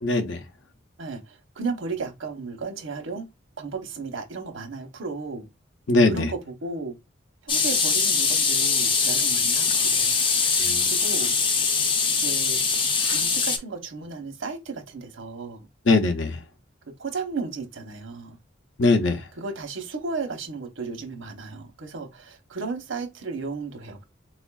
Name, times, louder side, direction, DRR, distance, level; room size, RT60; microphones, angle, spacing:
voice 1, 0.0-0.4 5.9-6.3 10.6-10.8 15.9-16.4 18.8-19.2, left 3 dB, 75° left, 0.6 m, -21 dB
voice 2, 1.0-3.2 3.6-5.5 6.0-7.0 7.4-10.1 10.8-11.3 12.2-12.6 13.1-15.7 17.0-18.4 19.4-24.1, right 4 dB, 85° right, 0.9 m, -34 dB
sound 1, 7.5-13.6, left 5 dB, 25° left, 0.4 m, -22 dB
4.2 x 2.4 x 2.3 m
head